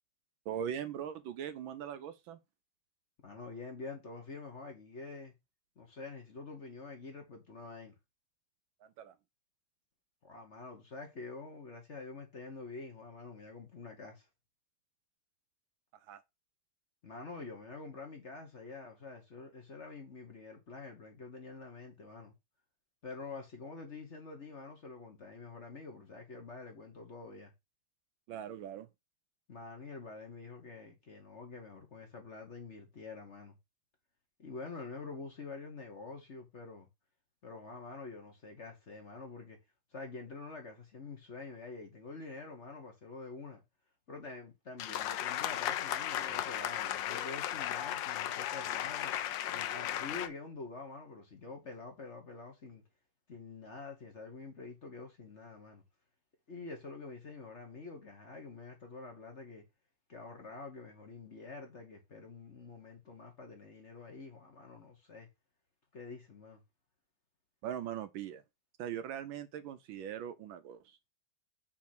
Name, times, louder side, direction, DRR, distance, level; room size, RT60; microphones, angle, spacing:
voice 1, 0.5-2.4 8.8-9.2 16.1-16.2 28.3-28.9 67.6-68.4 68.8-71.0, right 9 dB, 75° right, 1.4 m, -40 dB
voice 2, 3.2-5.3 5.8-8.0 10.2-14.3 17.0-22.3 23.0-27.5 29.5-33.5 34.4-36.9 37.4-39.6 39.9-43.6 44.1-49.1 49.5-52.8 53.3-55.8 56.5-59.6 60.1-65.3 65.9-66.6, left 3 dB, 40° left, 1.3 m, -47 dB
sound 1, 44.8-50.3, left 12 dB, 70° left, 1.2 m, -35 dB
6.4 x 3.4 x 5.9 m
omnidirectional pair, 2.3 m